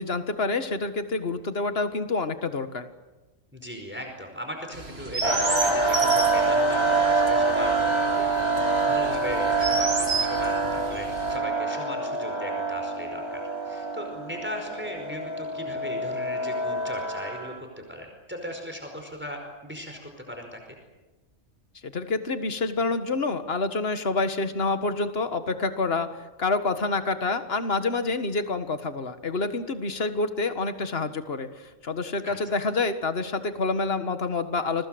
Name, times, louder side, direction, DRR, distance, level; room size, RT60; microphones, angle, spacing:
voice 1, 0.0-2.9 21.8-26.1 26.4-34.9, left 3 dB, 50° left, 9 dB, 1.9 m, -27 dB
voice 2, 3.5-20.6 32.2-32.4, equal, 10° right, 3 dB, 5.1 m, -38 dB
Chirp tweet, 4.7-11.4, right 3 dB, 55° right, 3.2 m, -32 dB
sound 1, 5.2-17.6, right 3 dB, 20° left, 3.9 m, -26 dB
28.5 x 22.0 x 8.0 m, 1.1 s
omnidirectional pair, 1.3 m